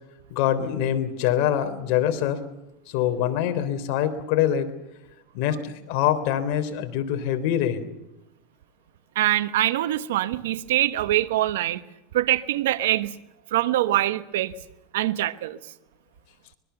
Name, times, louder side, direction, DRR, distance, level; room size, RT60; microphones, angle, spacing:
voice 1, 0.3-2.4 2.9-4.7 5.3-7.9, left 10 dB, 60° left, 8 dB, 3.5 m, -24 dB
voice 2, 9.1-11.8 12.1-13.1 13.5-14.5 14.9-15.6, right 14 dB, 85° right, 13 dB, 1.2 m, -23 dB
24.5 x 22.0 x 7.0 m, 0.91 s
supercardioid pair, 135°, 0 cm